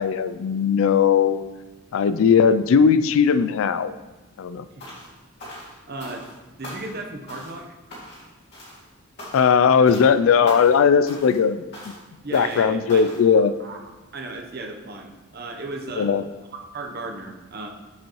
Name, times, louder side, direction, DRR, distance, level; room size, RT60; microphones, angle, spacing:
voice 1, 0.0-1.4 1.9-3.9 4.4-4.7 9.3-11.6 12.3-13.5 16.0-16.2, left 6 dB, 65° left, 13 dB, 0.3 m, -18 dB
sound 1, 4.8-5.1 5.4-6.4 6.6-7.0 7.3-7.6 7.9-8.3 8.5-8.8 9.2-9.6 9.9-10.1 10.5-10.8 11.1-11.4 11.7-12.0 12.3-12.6 12.9-13.2, left 1 dB, 50° left, 2.4 m, -39 dB
voice 2, 5.9-7.8 12.2-13.0 13.6-13.8 14.1-16.1 16.5-17.7, right 2 dB, 45° right, 3 dB, 0.8 m, -35 dB
7.3 x 6.9 x 3.1 m, 1.2 s
head